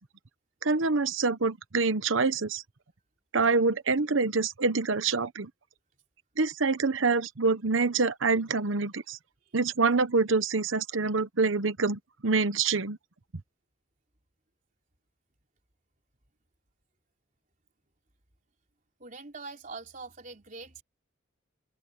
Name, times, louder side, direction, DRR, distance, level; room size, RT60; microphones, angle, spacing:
voice 1, 0.6-2.6 3.3-5.5 6.4-9.2 9.5-13.0, right 4 dB, 70° right, 1.0 m, -26 dB
voice 2, 19.0-20.8, right 3 dB, 40° right, 3.9 m, -43 dB
open air
head